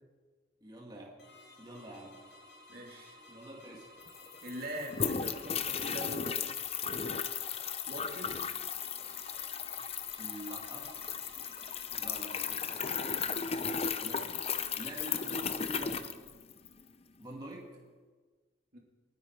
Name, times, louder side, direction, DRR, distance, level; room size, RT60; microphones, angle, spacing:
voice 1, 0.6-1.2 1.6-2.2 3.3-3.9 10.2-10.9 12.0-13.5 14.0-14.3 14.8-16.0 17.2-17.7, right 1 dB, 25° right, -2 dB, 2.0 m, -46 dB
sound 1, 1.2-16.0, left 2 dB, 65° left, 4.5 m, -55 dB
voice 2, 2.7-3.2 4.4-6.5 7.9-8.5 11.9-12.1 18.7-18.8, equal, 55° right, 0 dB, 2.7 m, -43 dB
sound 2, 3.7-3.8 4.0-16.8, left 6 dB, 35° left, 0.7 m, -36 dB
29.0 x 10.0 x 4.6 m, 1.4 s
head